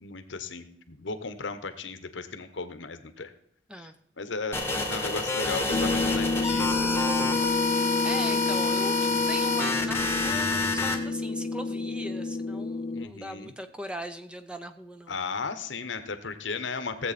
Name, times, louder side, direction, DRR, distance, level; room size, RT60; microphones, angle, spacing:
voice 1, 0.0-3.3 3.8-3.9 4.2-7.1 9.1-9.2 12.9-13.5 15.1-17.1, left 4 dB, 70° left, 10 dB, 1.0 m, -35 dB
sound 1, 4.5-11.0, left 3 dB, 10° left, 1.3 m, -27 dB
sound 2, 5.7-13.1, left 3 dB, 30° left, 0.3 m, -30 dB
voice 2, 8.0-15.1, equal, 5° right, 8 dB, 0.7 m, -39 dB
16.5 x 7.9 x 4.2 m, 0.72 s
head